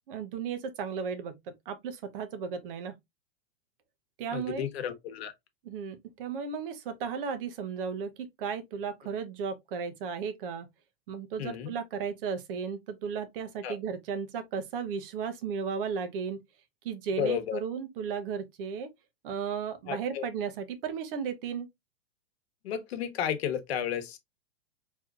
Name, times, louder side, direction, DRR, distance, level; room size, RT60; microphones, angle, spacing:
voice 1, 0.1-1.4 1.7-2.9 4.2-4.7 5.6-10.7 11.1-16.4 16.8-18.9 19.2-21.7, right 6 dB, 55° right, 1.0 m, -35 dB
voice 2, 4.3-5.3 11.4-11.7 13.6-13.8 17.2-17.6 19.9-20.2 22.6-24.2, left 9 dB, 65° left, 1.2 m, -32 dB
4.7 x 3.1 x 2.4 m
hypercardioid pair, 145°, 33 cm